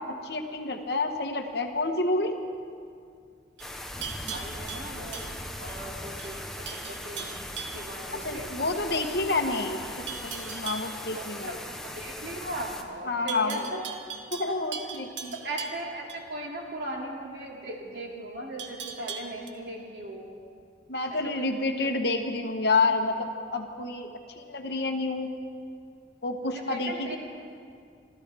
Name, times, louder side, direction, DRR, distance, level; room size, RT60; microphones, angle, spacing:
voice 1, 0.2-2.3 8.1-11.6 13.1-13.7 14.3-15.3 20.9-24.1 24.4-25.3 26.2-27.2, left 3 dB, 60° left, 5 dB, 1.2 m, -29 dB
sound 1, 3.6-12.8, left 1 dB, 5° left, 0.8 m, -39 dB
Livestock farm animals working animals, 3.6-5.8 6.2-6.4 6.7-7.9 10.1-10.9 13.3-16.2 18.6-19.5, right 6 dB, 85° right, 1.2 m, -39 dB
voice 2, 4.3-5.3 5.6-7.3 7.7-8.5 11.1-13.8 14.5-14.6 15.4-20.3 21.2-22.0 26.7-27.2, right 1 dB, 65° right, -1 dB, 2.5 m, -38 dB
26.5 x 14.0 x 3.5 m, 2.3 s
head